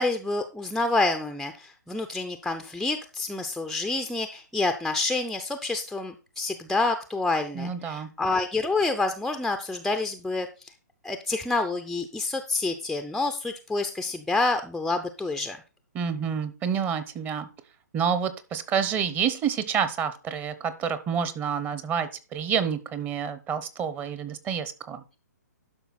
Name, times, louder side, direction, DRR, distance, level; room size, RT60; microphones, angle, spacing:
voice 1, 0.0-10.5 11.0-15.6, left 3 dB, ahead, 7 dB, 0.5 m, -28 dB
voice 2, 7.5-8.1 15.9-17.5 17.9-25.0, right 7 dB, 20° right, 13 dB, 0.8 m, -28 dB
11.5 x 5.6 x 4.2 m, 0.33 s
hypercardioid pair, 135°, 9 cm